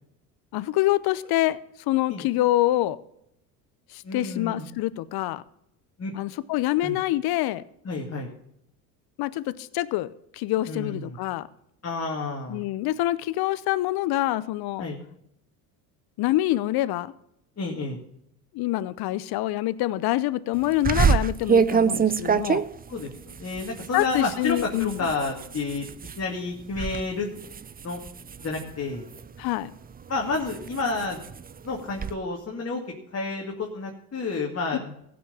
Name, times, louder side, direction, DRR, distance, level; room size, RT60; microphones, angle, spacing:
voice 1, 0.5-1.6 1.9-3.0 3.9-5.4 6.1-7.6 9.2-11.5 12.5-14.8 16.2-17.1 18.5-22.6 23.9-25.1 29.4-29.7, left 16 dB, 55° left, 17 dB, 0.8 m, -26 dB
voice 2, 4.0-4.7 6.0-6.1 6.8-6.9 7.8-8.3 10.7-11.2 11.8-12.6 14.8-15.0 17.6-18.0 22.9-25.9 26.2-27.3 27.8-28.0 28.4-29.1 30.1-31.2 31.6-32.8 33.1-34.9, left 3 dB, 30° left, -1 dB, 2.5 m, -30 dB
sound 1, 20.8-26.2 26.6-27.0 27.4-29.4 29.9-32.1, right 6 dB, 20° right, 0.6 m, -26 dB
15.5 x 6.3 x 7.1 m, 0.75 s
hypercardioid pair, 70°, 45 cm